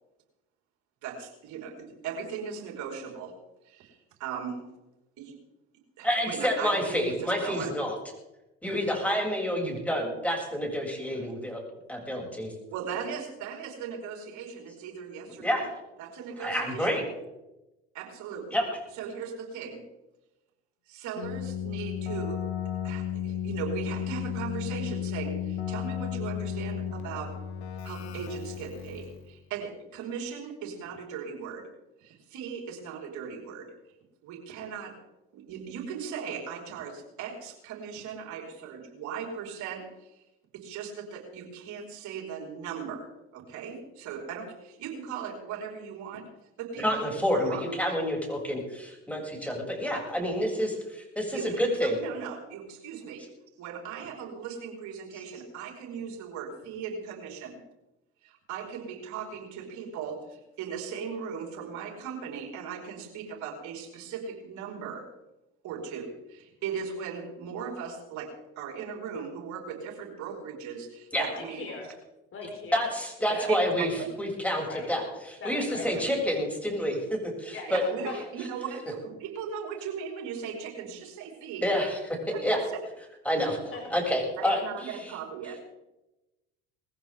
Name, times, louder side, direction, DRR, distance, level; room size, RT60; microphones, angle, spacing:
voice 1, 1.0-3.4 3.6-4.7 5.2-5.4 6.0-7.7 11.1-11.3 12.7-15.7 16.0-17.0 17.9-18.6 18.9-19.8 20.9-22.4 22.8-27.4 27.8-31.7 32.0-33.7 34.2-35.0 35.3-40.2 40.5-46.3 46.6-47.7 51.3-53.3 53.6-57.6 58.2-65.1 65.6-71.9 73.5-74.1 75.9-76.0 77.7-81.7 82.3-82.5 83.4-83.6 84.4-85.6, right 6 dB, 60° right, 0 dB, 5.2 m, -38 dB
voice 2, 6.0-7.9 8.6-11.6 11.9-12.5 15.4-15.6 16.4-17.0 18.5-18.6 46.8-51.9 71.1-71.2 72.7-73.9 74.2-77.8 81.6-82.0 82.4-82.6 83.2-83.6 83.9-85.0, equal, 5° left, -1 dB, 7.9 m, -28 dB
Keyboard (musical), 21.2-29.3, left 9 dB, 80° left, 2.0 m, -34 dB
voice 3, 71.3-71.9 72.3-72.8 73.2-73.5 74.6-74.9 75.4-75.9 77.5-77.7 78.0-78.2 83.7-83.8, left 4 dB, 40° left, 0 dB, 4.5 m, -39 dB
21.0 x 15.5 x 3.9 m, 0.99 s
hypercardioid pair, 65°, 33 cm